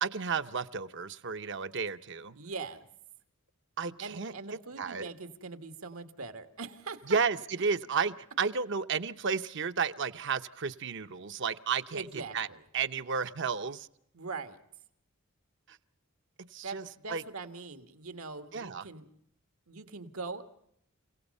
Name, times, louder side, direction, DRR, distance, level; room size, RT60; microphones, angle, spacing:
voice 1, 0.0-2.4 3.8-4.3 4.8-5.1 7.1-12.1 12.3-12.5 12.7-13.9 15.7-15.8 16.5-16.8 17.1-17.2 18.5-18.9, right 5 dB, 55° right, 10 dB, 0.8 m, -32 dB
voice 2, 2.3-2.9 4.0-7.2 11.9-12.6 14.1-14.6 16.6-19.1 19.7-20.4, right 4 dB, 85° right, 9 dB, 1.7 m, -42 dB
30.0 x 17.5 x 5.4 m, 0.72 s
head